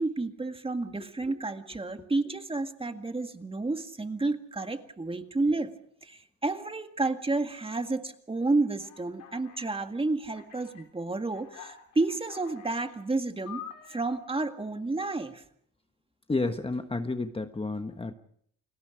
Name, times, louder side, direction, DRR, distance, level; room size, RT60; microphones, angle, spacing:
voice 1, 0.0-5.7 6.0-15.4, right 3 dB, 20° right, 7 dB, 1.9 m, -31 dB
Alarm, 8.8-9.8 10.3-10.8 11.3-12.9 13.5-14.0, left 9 dB, 85° left, 4.9 m, -47 dB
voice 2, 16.3-18.1, left 3 dB, 20° left, 8 dB, 1.3 m, -31 dB
29.5 x 20.0 x 5.1 m, 0.67 s
cardioid pair, 90°, 30 cm